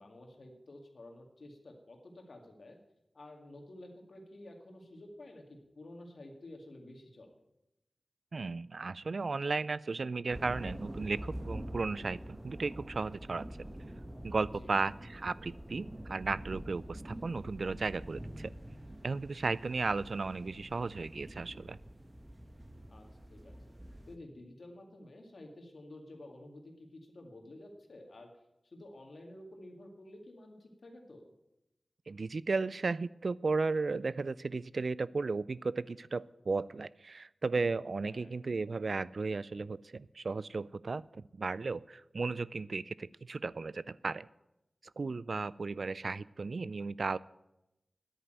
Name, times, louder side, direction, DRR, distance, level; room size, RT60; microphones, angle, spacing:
voice 1, 0.0-2.8 3.1-7.3 14.6-14.8 22.9-23.6 24.1-28.3 28.6-31.3 38.0-38.3, left 1 dB, 70° left, 3 dB, 2.2 m, -51 dB
voice 2, 8.3-13.7 14.2-18.5 19.0-21.8 32.1-44.3 45.0-47.2, right 4 dB, 65° right, 19 dB, 0.3 m, -35 dB
sound 1, 10.3-24.2, right 1 dB, 20° right, 1.3 m, -46 dB
10.5 x 9.0 x 9.1 m, 0.91 s
wide cardioid pair, 95°, 0 cm